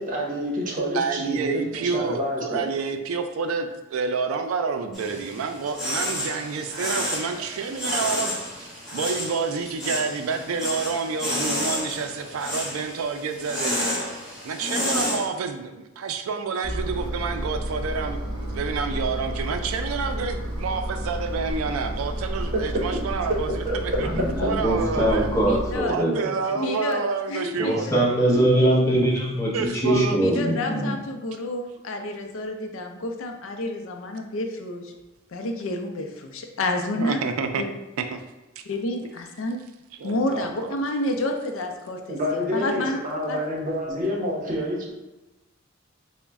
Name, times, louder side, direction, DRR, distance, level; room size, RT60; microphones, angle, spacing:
voice 1, 0.0-2.6 22.5-22.6 23.7-23.8 42.1-44.9, equal, 40° right, -3 dB, 0.9 m, -28 dB
voice 2, 0.9-13.8 14.4-24.1 24.4-25.3 25.9-27.9 29.5-30.2 37.0-37.6 40.0-40.8, right 5 dB, 85° right, 7 dB, 0.4 m, -28 dB
sound 1, 4.9-15.3, left 1 dB, ahead, 1.2 m, -30 dB
Engine, 16.6-25.8, equal, 25° right, 1.3 m, -31 dB
voice 3, 24.1-26.3 27.6-30.9, right 1 dB, 15° left, -5 dB, 0.9 m, -22 dB
voice 4, 25.4-25.9 26.6-27.0 27.3-27.8 30.2-34.9 35.3-37.2 37.6-37.7 38.7-39.6 40.0-43.0 43.3-43.4, left 1 dB, 70° left, 4 dB, 0.5 m, -29 dB
3.9 x 2.1 x 3.4 m, 1.0 s
head